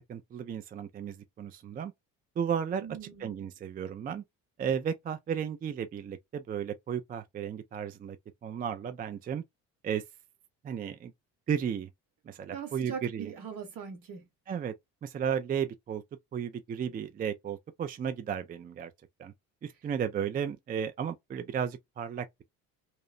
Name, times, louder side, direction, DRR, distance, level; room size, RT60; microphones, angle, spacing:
voice 1, 0.1-1.9 2.4-2.9 3.2-4.2 4.6-8.2 8.4-9.4 9.8-10.0 10.6-11.1 11.5-11.9 12.3-13.3 14.5-14.7 15.0-16.0 16.3-18.9 19.2-19.3 19.6-22.4, right 8 dB, 25° right, 0.3 m, -34 dB
voice 2, 2.8-3.4 12.5-14.3, right 7 dB, 65° right, 1.3 m, -41 dB
2.9 x 2.0 x 2.4 m
supercardioid pair, 75°, 36 cm